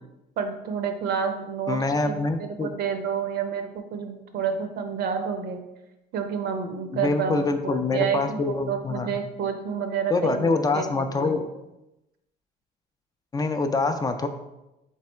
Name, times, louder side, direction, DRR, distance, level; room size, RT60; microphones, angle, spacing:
voice 1, 0.4-5.6 6.1-11.4, right 6 dB, 70° right, 7 dB, 0.6 m, -29 dB
voice 2, 1.7-2.7 6.9-9.1 10.1-11.4 13.3-14.3, left 3 dB, 20° left, 7 dB, 0.4 m, -25 dB
3.6 x 3.3 x 4.2 m, 0.95 s
cardioid pair, 110°, 17 cm